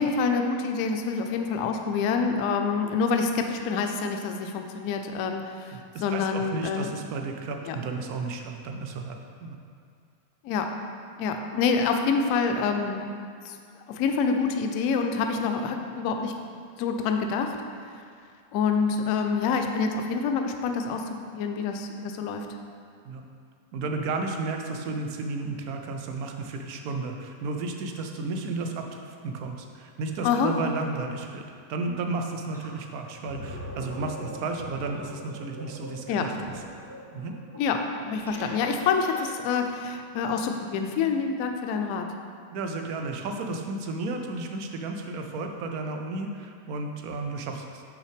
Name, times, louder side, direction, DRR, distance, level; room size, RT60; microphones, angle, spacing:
voice 1, 0.0-6.9 7.7-7.8 10.4-10.7 11.2-13.6 13.9-16.3 16.8-17.6 18.5-21.1 21.3-22.5 30.2-30.5 36.1-36.3 37.6-37.8 38.0-42.1, left 5 dB, 45° left, 4 dB, 0.5 m, -27 dB
voice 2, 5.7-9.6 23.0-23.2 23.7-31.4 31.7-36.4 37.1-37.4 42.5-47.8, right 3 dB, 45° right, 4 dB, 0.6 m, -33 dB
Gurgling, 32.5-32.7 33.1-39.6, equal, 75° right, 1.3 m, -42 dB
6.2 x 4.8 x 3.5 m, 2.2 s
figure-of-eight pair, 90°, 0 cm